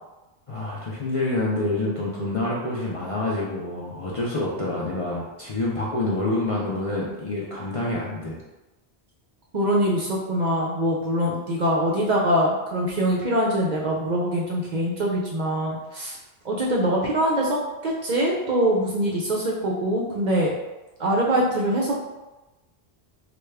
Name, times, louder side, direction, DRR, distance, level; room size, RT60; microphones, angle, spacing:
voice 1, 0.5-8.4, left 2 dB, 45° left, -6 dB, 0.5 m, -27 dB
voice 2, 9.5-16.2 16.4-20.5 21.0-22.0, right 1 dB, 55° right, -3 dB, 0.6 m, -23 dB
3.4 x 2.3 x 3.2 m, 1.1 s
omnidirectional pair, 1.1 m